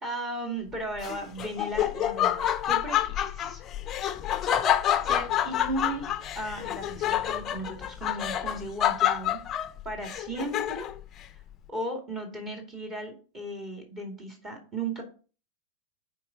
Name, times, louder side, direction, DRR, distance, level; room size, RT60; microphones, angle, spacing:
voice 1, 0.0-3.6 5.0-6.0 6.3-9.4 9.8-10.9 11.7-15.0, right 1 dB, 25° right, 2 dB, 2.2 m, -36 dB
Laughter, 1.0-11.0, left 11 dB, 30° left, 0.6 m, -28 dB
10.0 x 4.6 x 3.9 m, 0.37 s
figure-of-eight pair, 90°, 0 cm